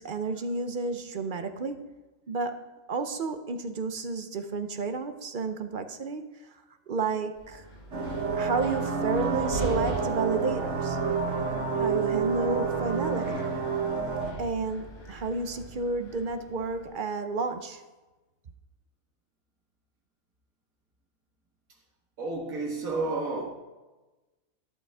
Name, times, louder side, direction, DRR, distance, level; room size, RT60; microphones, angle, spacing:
voice 1, 0.0-1.9 2.3-6.3 6.9-7.6 8.3-11.0 11.7-13.5 14.4-17.8, right 4 dB, 45° right, 0.8 m, -31 dB
Wind, 7.4-16.9, right 1 dB, 85° left, 3.5 m, -42 dB
sound 1, 7.9-14.3, right 5 dB, 60° right, 1.7 m, -29 dB
voice 2, 22.2-23.5, right 3 dB, 90° right, 1.9 m, -31 dB
12.5 x 11.0 x 3.5 m
omnidirectional pair, 1.4 m